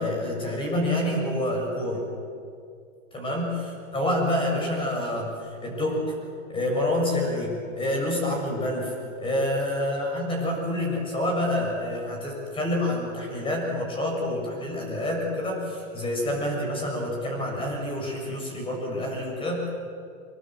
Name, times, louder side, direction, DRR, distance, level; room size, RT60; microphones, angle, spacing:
voice 1, 0.0-2.0 3.1-6.0 6.5-19.6, left 1 dB, 15° left, 0 dB, 7.3 m, -28 dB
26.0 x 24.5 x 7.7 m, 2.3 s
hypercardioid pair, 150°, 39 cm